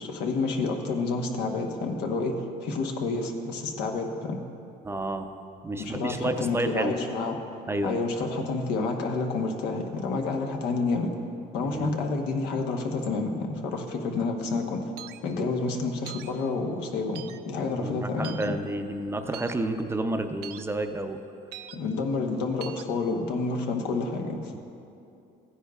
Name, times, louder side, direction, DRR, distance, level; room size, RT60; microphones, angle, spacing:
voice 1, 0.0-4.4 5.8-7.4 7.8-11.1 11.5-14.9 15.2-18.5 21.7-24.5, left 3 dB, 85° left, 3 dB, 1.0 m, -29 dB
voice 2, 4.8-5.3 5.6-6.9 7.7-8.0 11.7-11.9 17.7-21.2, right 1 dB, 15° right, 7 dB, 0.5 m, -30 dB
sound 1, 15.0-15.2 16.1-16.3 17.1-17.4 18.2-18.5 19.3-19.5 20.4-20.6 21.5-21.8 22.6-22.8, right 12 dB, 75° right, 0.4 m, -41 dB
15.0 x 9.9 x 2.3 m, 2.7 s
cardioid pair, 110°, 17 cm